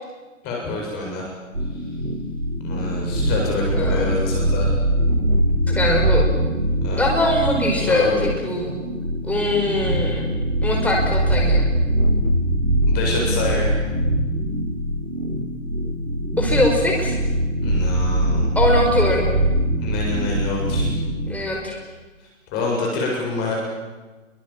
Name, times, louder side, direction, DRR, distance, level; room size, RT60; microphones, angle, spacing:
voice 1, 0.4-1.3 2.6-4.7 6.8-7.0 7.8-8.3 12.9-13.8 17.6-18.6 19.8-20.9 22.2-23.5, left 3 dB, 25° left, -1 dB, 7.8 m, -27 dB
sound 1, 1.5-21.3, right 1 dB, 90° right, 4.3 m, -22 dB
voice 2, 3.7-4.2 5.7-6.3 7.0-8.8 9.2-10.2 10.6-11.6 16.4-17.2 18.6-19.3 21.3-21.8, left 1 dB, 5° left, -1 dB, 5.5 m, -22 dB
28.0 x 24.0 x 7.6 m, 1.2 s
figure-of-eight pair, 130°, 39 cm